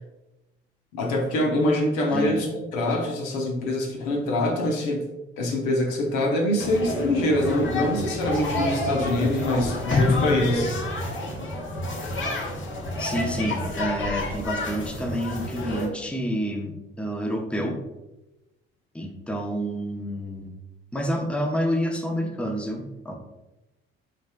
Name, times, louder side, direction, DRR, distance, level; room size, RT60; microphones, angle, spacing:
voice 1, 0.9-5.0 5.4-10.7, left 1 dB, 70° left, 1 dB, 1.0 m, -24 dB
sound 1, 6.6-15.9, left 1 dB, 40° left, 1.2 m, -30 dB
sound 2, 9.9-12.1 12.4-12.5, left 4 dB, 20° left, 0.4 m, -27 dB
voice 2, 13.0-17.8 18.9-20.5 20.9-23.1, equal, 5° left, 2 dB, 0.8 m, -29 dB
6.3 x 3.4 x 2.3 m, 1.0 s
hypercardioid pair, 55°, 29 cm